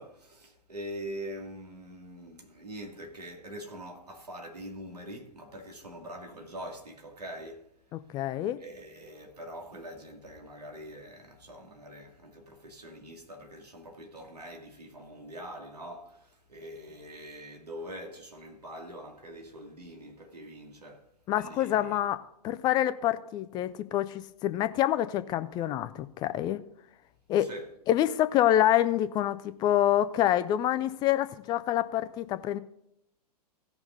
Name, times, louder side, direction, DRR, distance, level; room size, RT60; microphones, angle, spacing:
voice 1, 0.0-7.7 8.6-21.0 21.3-22.0 27.4-27.7, equal, 75° right, 2.3 m, -44 dB
voice 2, 7.9-8.6 21.3-26.6 27.3-27.5 27.9-32.6, left 12 dB, 20° left, 0.5 m, -27 dB
16.0 x 5.9 x 3.9 m
figure-of-eight pair, 105°, 20 cm